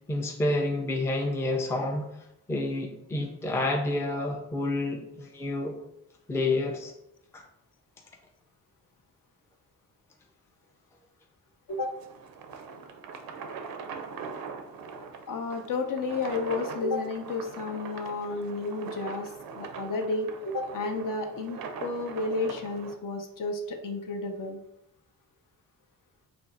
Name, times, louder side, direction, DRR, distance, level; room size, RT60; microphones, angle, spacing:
voice 1, 0.1-2.1 2.5-5.8 6.3-6.9 7.3-7.4, left 2 dB, 5° left, 3 dB, 0.4 m, -29 dB
sound 1, 11.7-22.9, right 5 dB, 60° right, 0.5 m, -41 dB
voice 2, 15.3-24.6, left 3 dB, 50° left, 4 dB, 0.6 m, -32 dB
2.5 x 2.1 x 3.8 m, 0.80 s
supercardioid pair, 45°, 41 cm